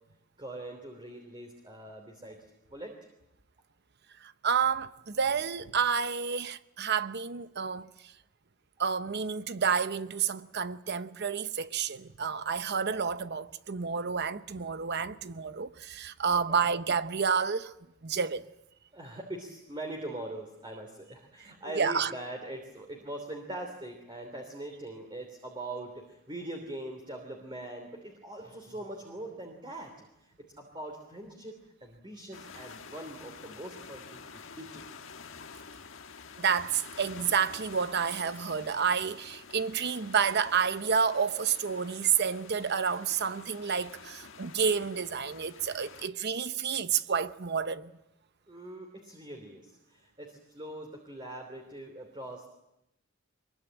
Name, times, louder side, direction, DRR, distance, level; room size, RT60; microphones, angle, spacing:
voice 1, 0.4-2.4 2.7-3.0 18.9-30.1 30.4-34.9 48.5-52.5, right 1 dB, 25° right, 3.1 m, -42 dB
voice 2, 4.2-7.9 8.8-17.7 18.0-18.5 21.7-22.1 36.4-47.9, right 6 dB, 55° right, 0.9 m, -30 dB
sound 1, 32.3-46.1, left 5 dB, 70° left, 1.5 m, -49 dB
23.5 x 22.0 x 8.9 m
head